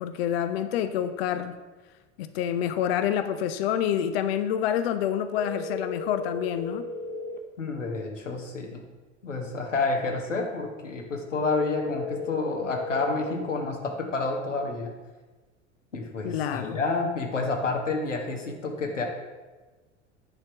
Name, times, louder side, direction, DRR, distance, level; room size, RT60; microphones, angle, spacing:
voice 1, 0.0-1.6 2.2-6.9 16.2-16.8, left 9 dB, 55° left, 10 dB, 0.6 m, -27 dB
sound 1, 5.4-7.4 11.3-13.4, left 3 dB, 25° left, 1.1 m, -35 dB
voice 2, 7.6-8.8 9.2-14.9 15.9-19.0, left 3 dB, 80° left, 1 dB, 1.4 m, -29 dB
10.0 x 4.4 x 6.9 m, 1.3 s
figure-of-eight pair, 75°, 37 cm